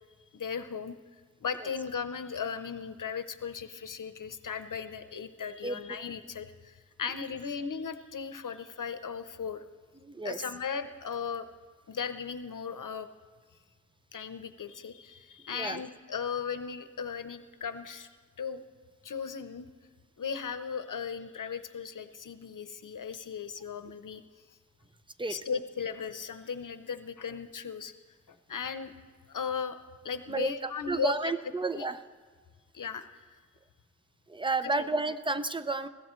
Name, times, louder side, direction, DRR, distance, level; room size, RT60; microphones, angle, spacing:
voice 1, 0.3-1.0 1.4-9.6 10.2-11.5 11.9-13.1 14.1-18.1 18.4-18.6 19.0-19.7 20.2-24.2 25.3-27.9 28.3-28.9 29.3-29.8 30.0-31.1 31.7-31.9 32.7-33.4 34.6-34.9, left 6 dB, 85° left, 10 dB, 0.7 m, -37 dB
voice 2, 10.0-10.4 15.5-15.8 25.2-25.4 30.3-32.0 34.3-35.9, right 3 dB, 15° right, 11 dB, 0.5 m, -31 dB
21.0 x 16.0 x 3.1 m, 1.5 s
wide cardioid pair, 75°, 31 cm